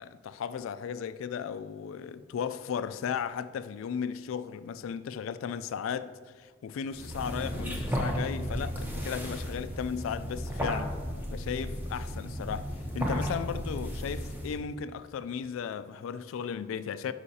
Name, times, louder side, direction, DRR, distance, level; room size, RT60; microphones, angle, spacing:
voice 1, 0.0-10.9 11.3-17.1, left 7 dB, 85° left, 0.3 m, -35 dB
sound 1, 6.9-14.6, equal, 10° right, 0.8 m, -34 dB
9.7 x 5.5 x 2.8 m
head